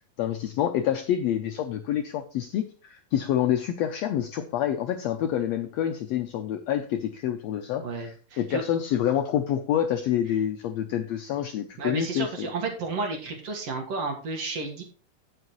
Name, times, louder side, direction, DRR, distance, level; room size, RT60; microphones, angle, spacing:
voice 1, 0.0-12.5, left 10 dB, 90° left, 6 dB, 1.4 m, -27 dB
voice 2, 7.8-8.6 11.8-14.8, right 3 dB, 55° right, 2 dB, 2.4 m, -32 dB
16.0 x 5.7 x 3.1 m, 0.38 s
omnidirectional pair, 3.8 m